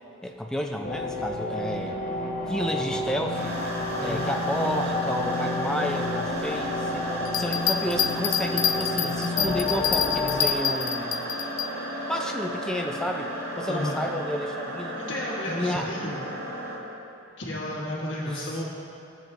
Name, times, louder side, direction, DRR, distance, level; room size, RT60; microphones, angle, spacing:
voice 1, 0.2-2.0 2.5-3.6 4.0-11.2 12.1-15.0 15.5-15.9 18.2-18.6, equal, 5° left, 2 dB, 0.4 m, -31 dB
sound 1, 0.8-10.5, left 2 dB, 40° left, 0.7 m, -30 dB
sound 2, 3.3-16.8, right 1 dB, 80° right, 1.7 m, -34 dB
voice 2, 4.0-4.3 13.7-14.0 15.0-16.2 17.4-18.6, left 1 dB, 65° left, -5 dB, 1.4 m, -32 dB
Bell, 7.2-11.7 12.2-12.3, left 8 dB, 80° left, 0.5 m, -26 dB
16.0 x 7.6 x 2.6 m, 2.9 s
head